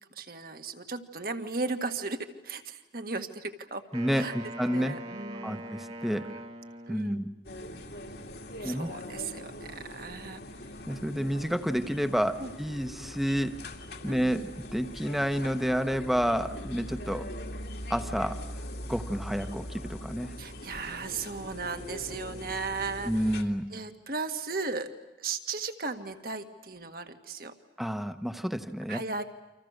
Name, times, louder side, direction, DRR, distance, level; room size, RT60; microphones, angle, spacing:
voice 1, 0.1-3.8 4.1-4.4 4.7-5.7 6.9-7.3 8.6-10.4 12.4-12.5 14.1-14.3 20.4-24.9 25.2-27.5 28.9-29.2, right 4 dB, 55° right, 7 dB, 1.8 m, -36 dB
voice 2, 3.9-5.0 5.4-6.3 6.9-7.3 8.6-8.9 10.9-13.5 14.0-17.3 17.9-18.4 18.9-20.3 23.0-23.7 27.8-29.0, equal, ahead, 9 dB, 1.1 m, -29 dB
Wind instrument woodwind instrument, 3.9-7.4, right 1 dB, 35° right, 1.8 m, -42 dB
sound 1, 7.4-23.4, left 1 dB, 65° left, 2.5 m, -41 dB
29.5 x 26.5 x 6.6 m, 1.0 s
head